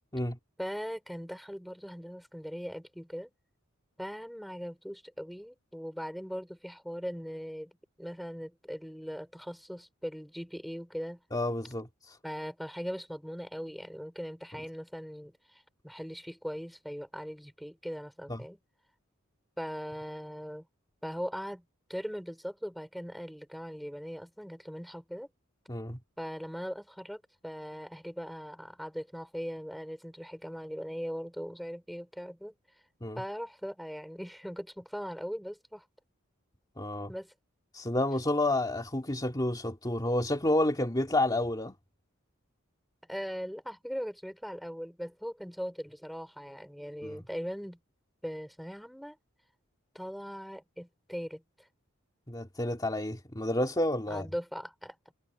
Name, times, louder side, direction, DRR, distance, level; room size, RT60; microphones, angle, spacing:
voice 1, 0.6-3.3 4.0-7.7 8.0-11.2 12.2-18.6 19.6-20.7 21.0-21.6 21.9-25.3 26.2-32.5 33.1-35.8 37.1-37.3 43.1-47.8 48.2-49.2 49.9-51.4 54.1-55.1, equal, ahead, 5.2 m, -40 dB
voice 2, 11.3-12.2 18.3-18.4 25.7-26.0 33.0-33.2 36.8-37.1 37.7-41.8 47.0-47.2 52.3-54.3, left 1 dB, 20° left, 2.6 m, -30 dB
head